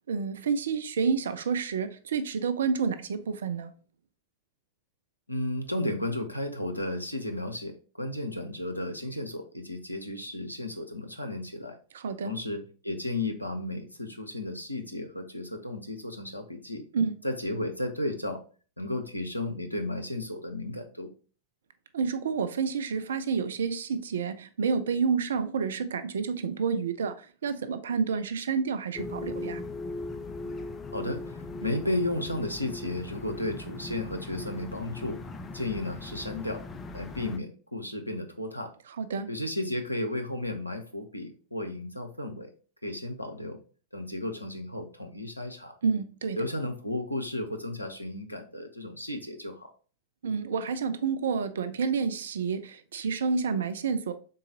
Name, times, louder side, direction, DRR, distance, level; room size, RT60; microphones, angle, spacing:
voice 1, 0.1-3.7 11.9-12.3 16.9-17.1 21.9-29.6 39.0-39.3 45.8-46.4 50.2-54.1, right 5 dB, 65° right, 0.3 m, -29 dB
voice 2, 5.3-11.8 12.2-16.8 17.2-18.4 18.8-21.1 30.9-35.2 35.5-36.6 36.9-38.7 39.3-42.5 42.8-43.6 43.9-45.8 46.4-49.7, left 1 dB, 85° left, 0.6 m, -34 dB
sound 1, 28.9-37.4, left 2 dB, 20° left, 0.4 m, -39 dB
3.8 x 3.8 x 2.7 m
figure-of-eight pair, 90°, 0 cm